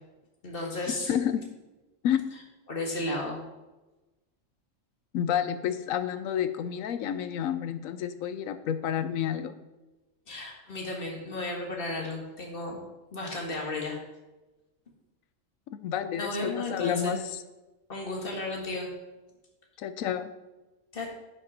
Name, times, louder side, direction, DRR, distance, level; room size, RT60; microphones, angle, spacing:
voice 1, 0.4-1.1 2.7-3.4 10.3-12.8 13.1-14.0 16.2-17.2 17.9-18.9 20.9-21.1, left 2 dB, 45° left, 0 dB, 1.8 m, -33 dB
voice 2, 1.1-1.4 2.0-2.2 5.1-9.5 15.7-17.2 19.8-20.3, left 9 dB, 80° left, 11 dB, 1.1 m, -29 dB
10.0 x 6.0 x 4.1 m, 1.1 s
omnidirectional pair, 1.4 m